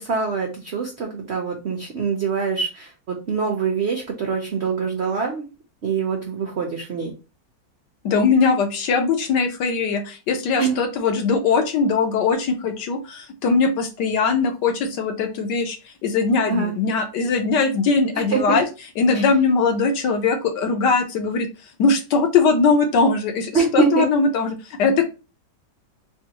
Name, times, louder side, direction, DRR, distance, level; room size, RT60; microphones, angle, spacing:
voice 1, 0.0-5.4 5.8-7.1 10.6-10.8 16.5-16.7 18.3-18.6 19.1-19.2 23.5-24.0, right 5 dB, 85° right, 1 dB, 0.5 m, -24 dB
voice 2, 8.0-15.8 16.0-18.6 19.0-21.5 21.8-25.1, left 4 dB, 65° left, 5 dB, 1.3 m, -20 dB
3.6 x 3.5 x 2.8 m, 0.31 s
omnidirectional pair, 2.2 m